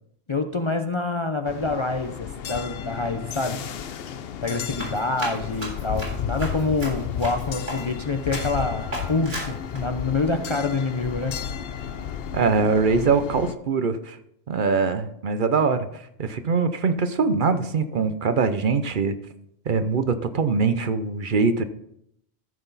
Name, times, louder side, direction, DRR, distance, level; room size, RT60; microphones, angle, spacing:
voice 1, 0.3-3.6 4.0-4.1 4.4-11.3, left 3 dB, 35° left, 6 dB, 0.5 m, -26 dB
sound 1, 1.4-13.5, left 8 dB, 70° left, 0.8 m, -33 dB
Run, 4.4-8.0 8.3-8.6 8.9-9.8, right 1 dB, 75° right, 4.0 m, -35 dB
voice 2, 12.3-14.2 14.5-19.2 19.7-21.6, right 4 dB, 55° right, 10 dB, 0.8 m, -23 dB
14.0 x 5.9 x 4.0 m, 0.74 s
omnidirectional pair, 1.1 m